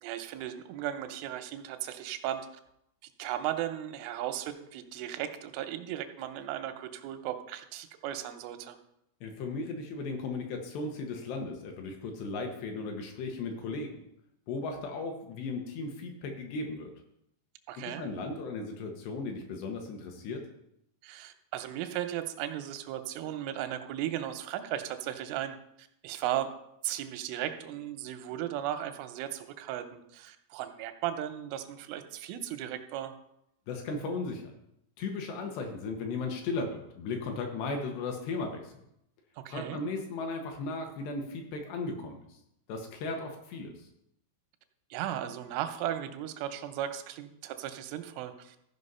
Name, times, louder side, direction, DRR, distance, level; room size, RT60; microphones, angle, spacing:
voice 1, 0.0-2.5 3.2-8.8 17.7-18.0 21.0-26.5 26.8-33.1 39.4-39.8 44.9-48.6, right 11 dB, 85° right, 8 dB, 3.2 m, -36 dB
voice 2, 9.2-13.9 14.5-16.9 18.0-20.4 33.7-34.5 35.0-38.7 39.5-42.4 42.7-43.7, left 3 dB, 70° left, 3 dB, 3.0 m, -36 dB
14.5 x 5.4 x 5.5 m, 0.78 s
omnidirectional pair, 5.6 m